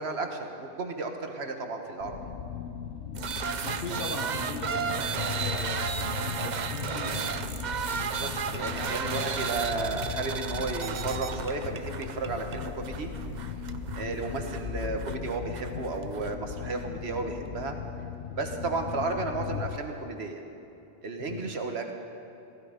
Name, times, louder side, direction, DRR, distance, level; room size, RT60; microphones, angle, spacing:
voice 1, 0.0-2.2 7.9-13.1 14.0-17.8 18.4-20.4 21.0-21.9, right 3 dB, 75° right, 4 dB, 1.5 m, -33 dB
sound 1, 2.0-19.8, left 8 dB, 70° left, 0.9 m, -38 dB
sound 2, 3.1-16.4, right 6 dB, 50° right, 0.7 m, -34 dB
voice 2, 3.6-7.4 8.9-9.3 21.2-21.5, left 2 dB, 55° left, 1 dB, 1.3 m, -38 dB
15.5 x 15.0 x 5.1 m, 2.9 s
omnidirectional pair, 1.1 m